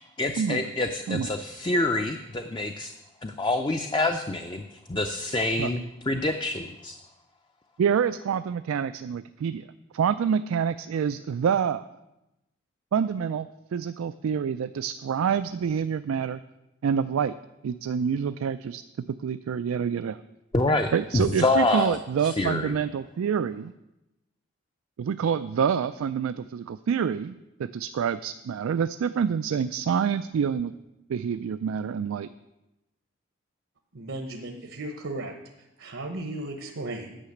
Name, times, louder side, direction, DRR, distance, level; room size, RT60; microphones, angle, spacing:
voice 1, 0.2-2.9 3.2-7.0 20.5-22.7, left 2 dB, 20° left, 6 dB, 0.4 m, -27 dB
voice 2, 7.8-9.6 9.9-11.9 12.9-16.4 16.8-17.3 17.6-18.8 19.2-20.2 20.9-23.7 25.0-27.3 27.6-30.7 31.1-32.3, right 7 dB, 85° right, 12 dB, 0.3 m, -27 dB
voice 3, 33.9-37.2, right 2 dB, 70° right, 4 dB, 0.9 m, -36 dB
10.0 x 5.8 x 7.8 m, 0.94 s
head